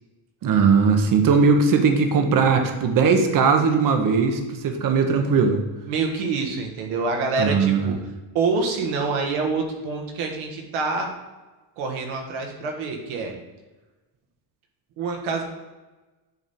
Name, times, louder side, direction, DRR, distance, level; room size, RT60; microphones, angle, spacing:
voice 1, 0.4-5.6 7.4-7.9, right 5 dB, 45° right, 5 dB, 0.9 m, -19 dB
voice 2, 5.9-8.0 8.3-11.1 11.8-13.3 15.0-15.4, right 4 dB, 80° right, 2 dB, 1.5 m, -26 dB
9.0 x 3.5 x 4.2 m, 1.2 s
cardioid pair, 145°, 47 cm